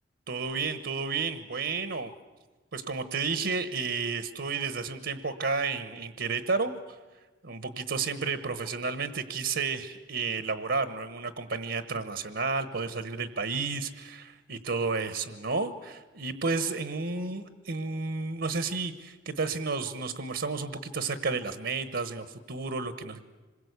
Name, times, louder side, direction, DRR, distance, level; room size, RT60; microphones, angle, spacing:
voice 1, 0.3-2.1 2.7-7.0 7.4-23.2, right 4 dB, 70° right, 10 dB, 1.2 m, -32 dB
26.5 x 21.5 x 8.2 m, 1.3 s
head